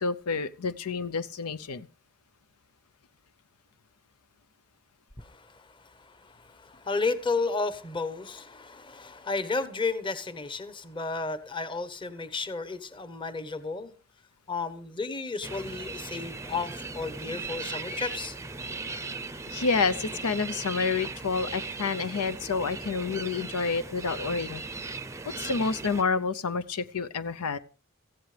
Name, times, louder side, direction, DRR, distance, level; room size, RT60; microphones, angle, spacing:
voice 1, 0.0-1.9 19.5-24.6 25.2-27.6, left 4 dB, 85° left, 0.7 m, -29 dB
voice 2, 5.2-13.9 14.5-18.4, left 3 dB, 25° left, 1.0 m, -33 dB
sound 1, 15.4-26.0, right 3 dB, 15° right, 0.6 m, -38 dB
18.5 x 15.0 x 3.3 m
head